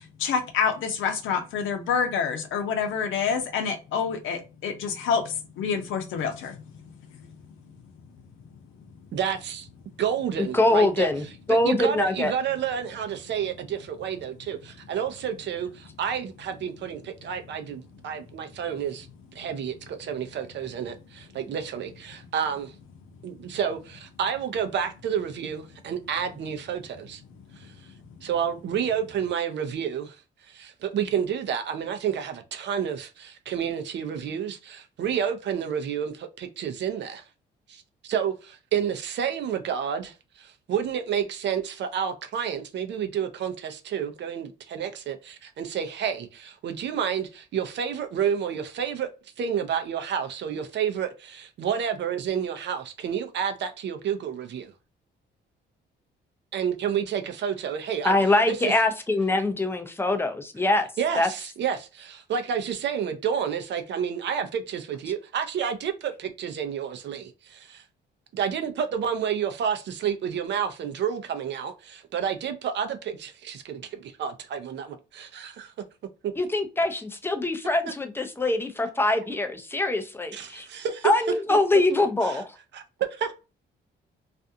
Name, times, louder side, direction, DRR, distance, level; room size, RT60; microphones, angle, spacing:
voice 1, 0.0-6.6, left 6 dB, 80° left, 0.7 m, -27 dB
voice 2, 9.1-9.7 10.0-11.1 11.5-19.1 19.3-22.7 23.2-27.2 27.6-27.7 28.2-30.2 30.5-37.2 37.7-49.1 49.4-54.7 56.5-58.2 58.5-58.7 61.0-67.8 68.3-75.7 80.3-81.1 82.2-82.4 82.7-83.3, right 8 dB, 65° right, 0.6 m, -30 dB
voice 3, 10.4-12.3 58.0-60.9 61.2-61.3 76.4-80.7 81.0-82.5, left 2 dB, 10° left, 0.5 m, -23 dB
2.5 x 2.3 x 2.6 m
cardioid pair, 90°, 20 cm